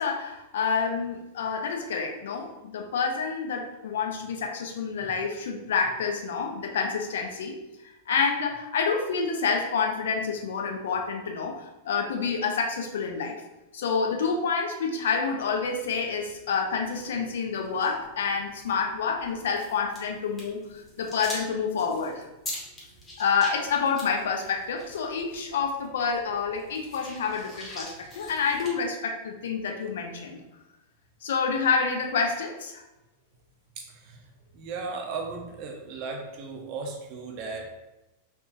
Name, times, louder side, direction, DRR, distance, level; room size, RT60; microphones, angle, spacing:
voice 1, 0.0-7.5 8.1-13.4 13.7-22.3 23.2-30.4 31.2-32.8, left 5 dB, 60° left, 2 dB, 0.4 m, -28 dB
sound 1, 15.4-28.7, left 1 dB, 20° left, 1.0 m, -45 dB
voice 2, 33.8-34.2 34.5-37.7, right 4 dB, 45° right, 1 dB, 0.6 m, -36 dB
3.5 x 2.4 x 2.4 m, 0.98 s
figure-of-eight pair, 90°, 0 cm